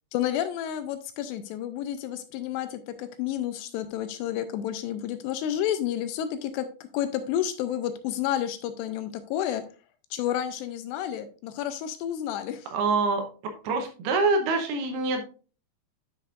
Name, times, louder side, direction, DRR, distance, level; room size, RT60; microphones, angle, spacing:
voice 1, 0.1-6.7 6.9-9.6 10.1-12.7, left 11 dB, 85° left, 10 dB, 2.6 m, -30 dB
voice 2, 12.7-15.2, right 3 dB, 75° right, 5 dB, 2.6 m, -26 dB
10.0 x 6.4 x 2.4 m, 0.37 s
omnidirectional pair, 5.1 m